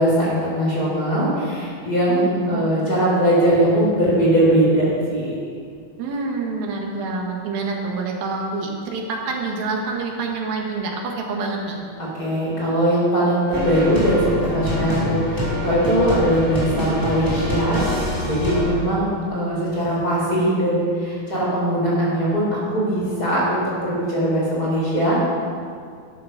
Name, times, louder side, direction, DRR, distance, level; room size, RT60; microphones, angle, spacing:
voice 1, 0.0-5.4 12.0-25.2, right 1 dB, 25° left, -6 dB, 4.5 m, -20 dB
voice 2, 2.1-2.7 6.0-11.8, right 3 dB, 85° right, 0 dB, 3.5 m, -27 dB
sound 1, 13.5-18.6, left 1 dB, 5° right, 2.7 m, -25 dB
12.5 x 12.0 x 5.9 m, 2.2 s
omnidirectional pair, 4.0 m